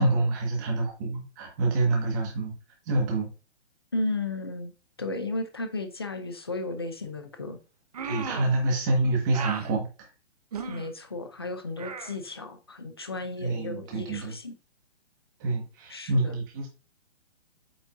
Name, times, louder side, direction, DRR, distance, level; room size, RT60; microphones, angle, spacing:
voice 1, 0.0-2.5 2.9-3.3 8.0-9.9 13.4-14.3 15.4-16.7, right 2 dB, 15° right, 1.6 m, -27 dB
voice 2, 3.9-4.7 5.0-7.6 10.7-14.5 15.9-16.4, left 2 dB, 25° left, 0.5 m, -34 dB
sound 1, 7.9-8.6 9.3-9.7 10.5-10.9 11.8-12.1, right 5 dB, 35° right, 0.8 m, -35 dB
8.3 x 5.4 x 2.6 m
hypercardioid pair, 175°, 34 cm